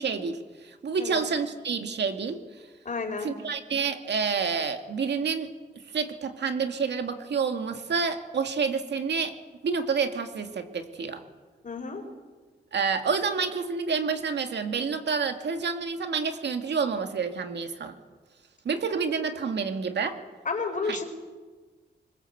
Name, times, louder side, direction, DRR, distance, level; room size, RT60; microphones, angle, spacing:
voice 1, 0.0-2.4 3.2-5.5 5.9-9.3 9.6-11.2 12.7-17.9 18.6-20.2 20.9-21.0, right 5 dB, 80° right, 6 dB, 2.2 m, -28 dB
voice 2, 2.8-3.3 11.6-12.0 20.4-21.0, left 4 dB, 45° left, 4 dB, 4.6 m, -31 dB
24.5 x 21.0 x 8.0 m, 1.3 s
wide cardioid pair, 95°, 18 cm